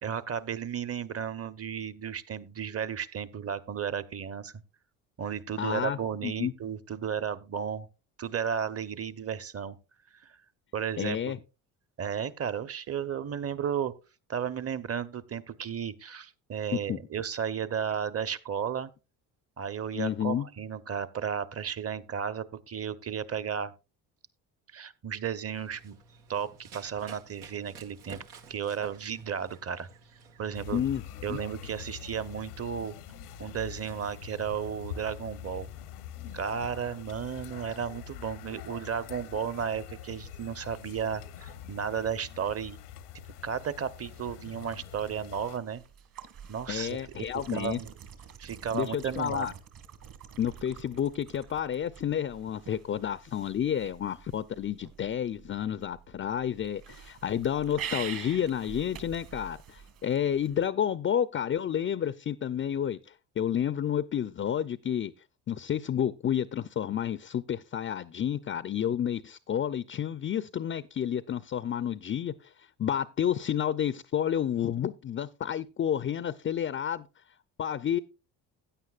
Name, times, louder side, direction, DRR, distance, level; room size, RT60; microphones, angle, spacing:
voice 1, 0.0-4.5 5.2-7.9 8.2-9.8 10.2-10.3 10.7-11.4 12.0-13.9 14.3-18.9 19.6-23.7 24.7-26.0 26.3-28.2 28.5-29.9 30.4-30.8 31.2-32.9 33.4-35.7 36.3-42.8 43.4-45.8 46.5-47.0 47.5-47.9 48.4-49.5, right 7 dB, 35° right, 0.9 m, -34 dB
voice 2, 5.6-6.0 6.2-6.5 11.0-11.4 16.7-17.0 19.9-20.5 30.7-31.0 31.3-31.4 46.7-47.8 48.7-49.5 50.4-63.0 63.4-65.1 65.5-72.5 72.8-77.1 77.6-78.0, left 9 dB, 30° left, 0.5 m, -30 dB
Run, 25.5-31.1, right 6 dB, 90° right, 1.5 m, -52 dB
sound 1, 30.5-45.6, left 9 dB, 90° left, 1.2 m, -44 dB
sound 2, 43.9-60.7, right 8 dB, 50° right, 1.9 m, -46 dB
15.5 x 9.3 x 2.4 m
hypercardioid pair, 65°, 44 cm